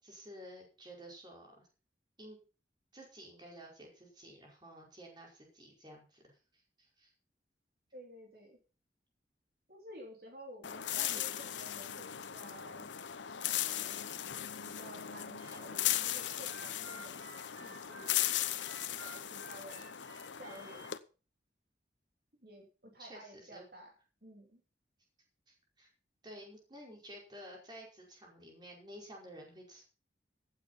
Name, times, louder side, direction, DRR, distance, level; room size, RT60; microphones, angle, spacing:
voice 1, 0.0-1.7 2.2-2.4 2.9-7.1 11.0-11.2 23.0-23.6 25.5-25.9 26.2-29.8, equal, 25° right, -1 dB, 5.2 m, -52 dB
voice 2, 7.9-8.6 9.7-12.9 13.4-14.0 14.6-17.2 17.5-18.2 19.0-19.9 20.4-20.9 22.4-23.9 24.2-24.6, equal, 55° right, 1 dB, 3.4 m, -53 dB
sound 1, 10.6-21.0, left 12 dB, 90° left, 0.9 m, -37 dB
Harmonica, 15.4-20.9, right 2 dB, 90° right, 6.6 m, -54 dB
15.5 x 8.5 x 5.7 m, 0.35 s
head